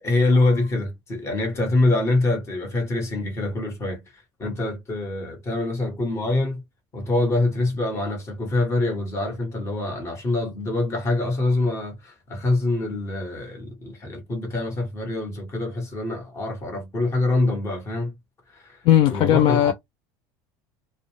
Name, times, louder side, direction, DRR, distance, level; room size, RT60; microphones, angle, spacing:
voice 1, 0.0-6.6 6.9-18.1 18.5-18.8 19.1-19.7, left 2 dB, 30° left, 1.3 m, -25 dB
voice 2, 18.9-19.7, left 12 dB, 60° left, 0.4 m, -17 dB
2.4 x 2.2 x 3.1 m
supercardioid pair, 115°, 9 cm